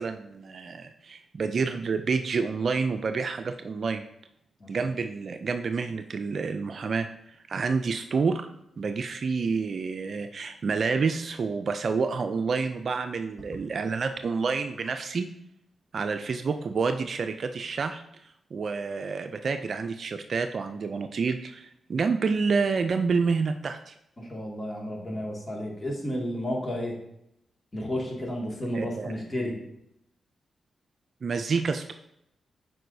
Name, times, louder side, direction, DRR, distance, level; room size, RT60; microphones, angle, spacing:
voice 1, 0.0-4.0 4.7-7.1 7.5-8.5 8.8-15.3 15.9-18.0 18.5-23.9 28.7-29.1 31.2-31.9, right 4 dB, 60° right, 8 dB, 0.4 m, -28 dB
voice 2, 24.2-27.0 27.7-29.5, equal, 35° left, -1 dB, 2.1 m, -32 dB
7.5 x 4.8 x 2.7 m, 0.79 s
supercardioid pair, 50°, 0 cm